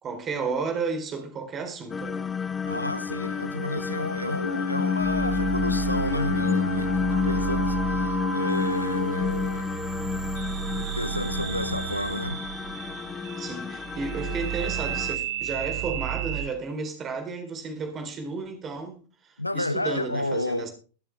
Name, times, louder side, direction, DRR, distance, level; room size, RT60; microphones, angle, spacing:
voice 1, 0.0-2.3 13.4-20.7, right 4 dB, 25° right, 3.8 m, -33 dB
sound 1, 1.9-15.2, left 6 dB, 15° left, 0.6 m, -30 dB
voice 2, 2.6-9.8 10.8-12.4 19.4-20.7, left 1 dB, 85° left, 0.5 m, -31 dB
Wind instrument woodwind instrument, 4.4-9.2, left 1 dB, 60° left, 1.8 m, -31 dB
sound 2, 4.8-16.5, right 11 dB, 50° right, 2.6 m, -33 dB
22.0 x 7.5 x 3.4 m
figure-of-eight pair, 90°, 0 cm